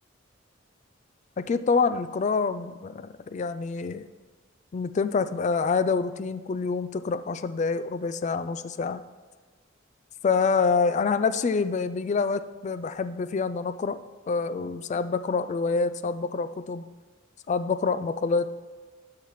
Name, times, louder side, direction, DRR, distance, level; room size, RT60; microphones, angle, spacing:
voice 1, 1.4-4.0 4.7-9.0 10.2-14.0 14.3-16.8 17.5-18.5, left 4 dB, 35° left, 12 dB, 0.3 m, -26 dB
12.5 x 5.7 x 3.1 m, 1.4 s
head